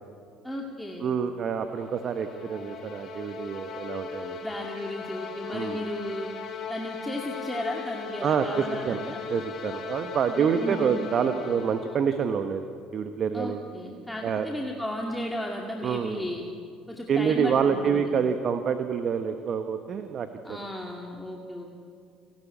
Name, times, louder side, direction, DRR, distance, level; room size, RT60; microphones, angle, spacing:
voice 1, 0.4-1.1 4.4-6.3 6.7-9.2 10.3-11.0 13.3-16.4 16.9-18.1 20.4-21.7, left 1 dB, 5° left, 0 dB, 2.4 m, -34 dB
voice 2, 1.0-4.4 5.5-5.8 8.2-9.0 9.3-13.6 14.2-14.5 15.8-16.3 17.1-20.6, right 7 dB, 45° right, 8 dB, 1.1 m, -27 dB
sound 1, 1.5-12.1, left 5 dB, 50° left, 3.3 m, -38 dB
29.5 x 12.0 x 8.6 m, 2.3 s
hypercardioid pair, 60°, 0 cm